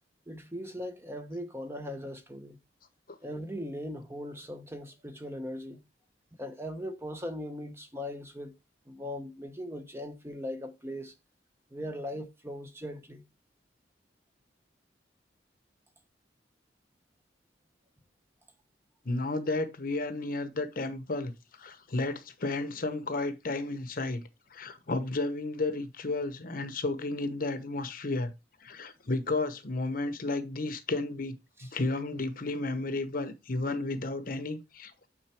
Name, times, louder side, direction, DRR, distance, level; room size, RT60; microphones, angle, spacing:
voice 1, 0.3-2.6 3.2-5.8 6.4-8.5 8.9-11.1 11.7-13.2 31.6-31.7, equal, 15° right, 0.9 m, -39 dB
voice 2, 19.0-21.3 21.6-24.2 24.5-28.3 28.6-31.4 31.7-35.1, left 2 dB, 50° left, 0.9 m, -32 dB
8.8 x 4.3 x 4.4 m
head